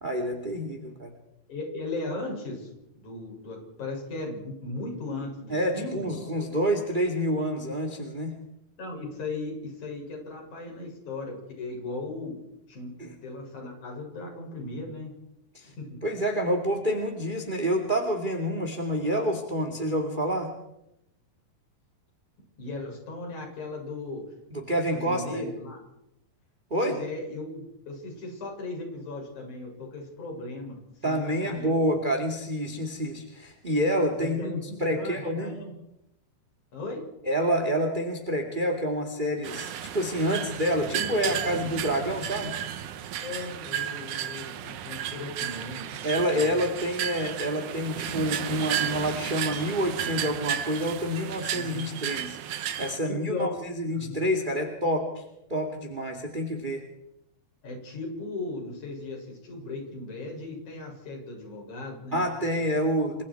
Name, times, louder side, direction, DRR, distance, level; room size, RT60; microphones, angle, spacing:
voice 1, 0.0-1.1 5.5-8.3 13.0-13.2 15.5-15.7 16.0-20.5 24.5-25.5 26.7-26.9 31.0-34.5 34.8-35.6 37.2-42.5 46.0-55.2 55.5-56.8 62.1-63.2, equal, 20° right, 4 dB, 1.5 m, -28 dB
voice 2, 1.5-6.3 8.8-12.4 12.7-12.9 13.2-15.1 15.6-16.0 22.6-24.2 24.9-25.8 26.7-30.8 31.0-32.0 34.2-34.6 34.9-35.7 36.7-37.0 40.9-41.3 43.2-45.9 46.3-46.7 51.5-51.8 53.0-53.5 53.9-54.2 57.6-62.3 62.8-62.9, left 2 dB, 45° left, 0 dB, 8.4 m, -37 dB
sound 1, 39.4-53.0, right 10 dB, 70° right, 2.0 m, -33 dB
30.0 x 24.5 x 4.8 m, 0.85 s
omnidirectional pair, 4.8 m